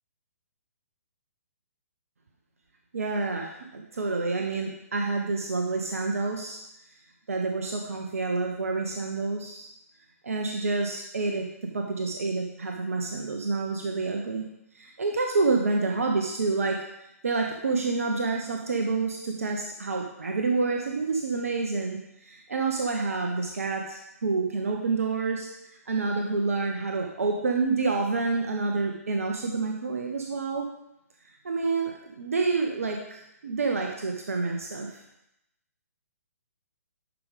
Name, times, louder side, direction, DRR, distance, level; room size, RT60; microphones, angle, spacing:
voice 1, 2.9-6.6 7.3-9.7 10.2-14.5 14.7-16.8 17.2-25.5 25.9-30.7 31.4-35.0, right 3 dB, 60° right, 2 dB, 0.9 m, -28 dB
11.0 x 5.0 x 3.4 m, 0.85 s
figure-of-eight pair, 130°, 9 cm